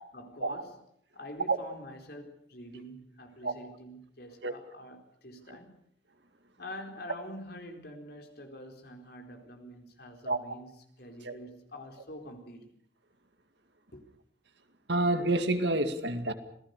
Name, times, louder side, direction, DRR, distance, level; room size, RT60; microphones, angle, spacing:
voice 1, 0.1-0.8 1.1-5.7 6.6-10.7 11.0-12.7 13.9-14.0, left 1 dB, 55° left, 4.3 m, -46 dB
voice 2, 14.9-16.3, right 2 dB, 65° right, 2.3 m, -28 dB
27.0 x 18.0 x 6.8 m
head